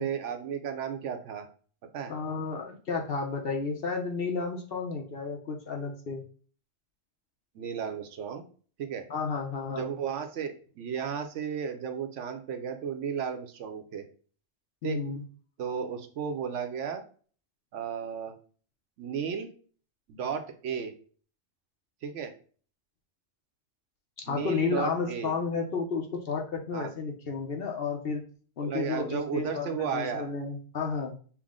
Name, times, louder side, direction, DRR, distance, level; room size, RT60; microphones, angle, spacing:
voice 1, 0.0-1.5 1.9-2.1 7.5-8.4 8.8-9.1 9.7-14.0 14.8-15.0 15.6-17.0 17.7-18.4 19.0-19.5 20.1-20.9 22.0-22.3 24.3-25.3 26.7-26.9 28.6-30.3, right 7 dB, 70° right, 6 dB, 0.9 m, -34 dB
voice 2, 2.1-6.2 9.1-9.9 14.8-15.2 24.3-28.2 28.6-31.1, left 4 dB, 55° left, 2 dB, 0.9 m, -32 dB
5.9 x 2.1 x 3.5 m, 0.42 s
omnidirectional pair, 1.3 m